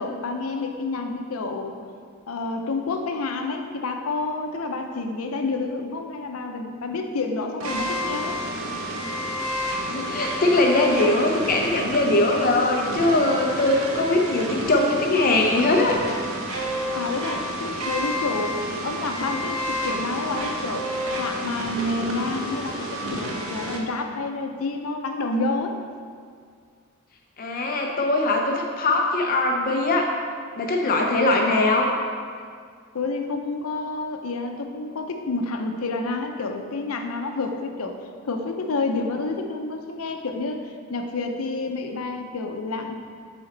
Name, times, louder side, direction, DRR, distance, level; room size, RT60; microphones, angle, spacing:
voice 1, 0.0-1.7 2.3-8.4 16.9-20.9 21.2-25.8 32.9-38.0 38.2-42.9, left 3 dB, 85° left, 4 dB, 0.6 m, -29 dB
sound 1, 7.6-23.8, equal, 70° right, 0.8 m, -30 dB
voice 2, 9.8-16.0 27.4-30.1 30.5-31.9, left 2 dB, 45° left, 1 dB, 0.5 m, -21 dB
7.0 x 4.2 x 3.9 m, 2.1 s
head